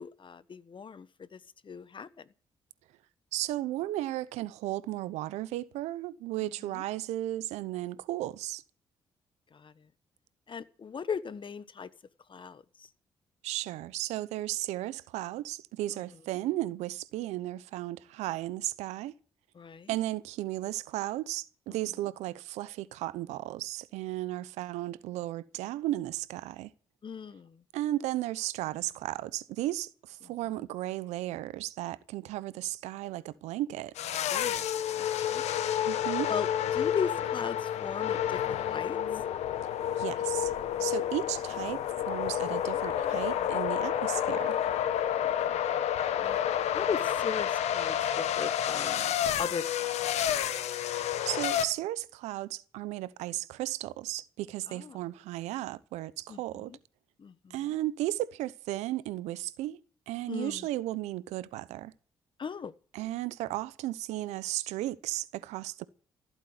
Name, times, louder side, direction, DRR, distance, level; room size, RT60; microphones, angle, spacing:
voice 1, 0.0-2.3 6.4-6.8 9.5-9.9 10.5-11.9 12.3-12.9 15.9-16.0 19.5-20.0 27.0-27.6 30.2-30.3 34.3-35.8 36.3-36.5 36.7-39.0 45.4-45.8 46.2-46.4 46.7-49.1 49.4-50.3 54.7-55.0 56.3-56.8 57.2-57.7 60.3-60.7 62.4-62.7, left 6 dB, 45° left, 1.2 m, -38 dB
voice 2, 3.3-8.6 13.4-19.1 19.9-26.7 27.7-33.9 35.8-36.3 40.0-40.5 40.8-41.8 42.1-44.6 51.3-56.7 57.5-59.8 60.1-61.9 62.9-65.8, right 15 dB, 80° right, 0.8 m, -35 dB
sound 1, 34.0-51.7, left 10 dB, 75° left, 1.4 m, -30 dB
15.0 x 8.4 x 9.7 m
hypercardioid pair, 50°, 11 cm